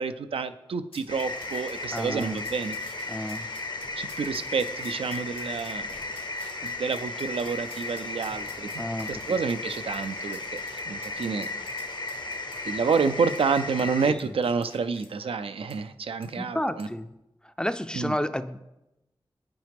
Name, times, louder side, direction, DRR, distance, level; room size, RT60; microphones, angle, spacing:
voice 1, 0.0-2.8 3.1-3.3 4.0-5.9 6.6-8.7 9.1-11.5 12.6-16.9 18.0-18.2, right 5 dB, 85° right, 10 dB, 0.4 m, -29 dB
sound 1, 0.9-15.1 15.7-15.8 16.2-16.3 16.8-17.0, left 3 dB, 80° left, 1.1 m, -52 dB
sound 2, 1.1-14.1, left 2 dB, 55° left, 0.7 m, -35 dB
voice 2, 1.9-2.5 3.1-3.5 8.8-9.4 14.1-14.3 16.4-17.1 17.6-18.6, left 1 dB, 10° left, 11 dB, 0.4 m, -31 dB
9.3 x 4.8 x 3.4 m, 0.92 s
cardioid pair, 45°, 9 cm